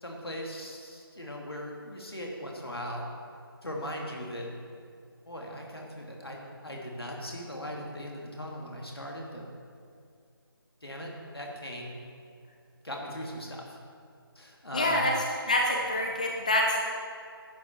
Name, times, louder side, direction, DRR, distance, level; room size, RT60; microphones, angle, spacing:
voice 1, 0.0-3.1 3.6-4.5 5.3-9.4 10.8-12.0 12.8-13.7 14.4-15.1 15.9-16.0, equal, 75° left, -1 dB, 2.3 m, -39 dB
voice 2, 14.7-15.1 15.5-16.8, left 1 dB, 20° left, 0 dB, 0.4 m, -26 dB
10.5 x 8.0 x 4.6 m, 2.3 s
figure-of-eight pair, 160°, 13 cm